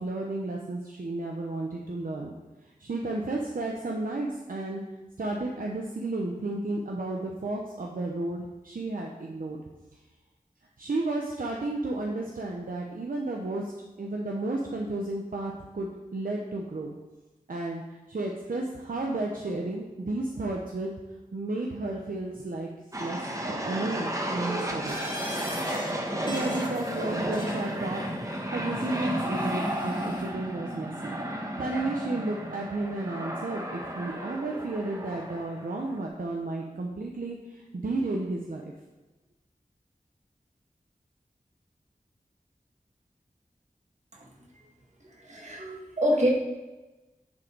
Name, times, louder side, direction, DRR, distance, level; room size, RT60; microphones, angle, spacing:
voice 1, 0.0-2.3 2.8-4.8 5.2-9.6 10.8-13.7 14.0-16.9 17.5-17.8 18.1-20.9 21.3-22.7 23.0-25.0 26.2-31.1 31.6-38.6, right 2 dB, 70° right, -1 dB, 0.8 m, -32 dB
sound 1, 22.9-36.0, equal, 20° right, 1.2 m, -33 dB
sound 2, 24.9-25.9 26.2-27.7 28.7-30.3, left 1 dB, 30° left, 2.2 m, -43 dB
voice 2, 45.2-46.3, equal, 50° right, -2 dB, 1.8 m, -26 dB
9.6 x 3.9 x 4.5 m, 1.1 s
wide cardioid pair, 40°, 15 cm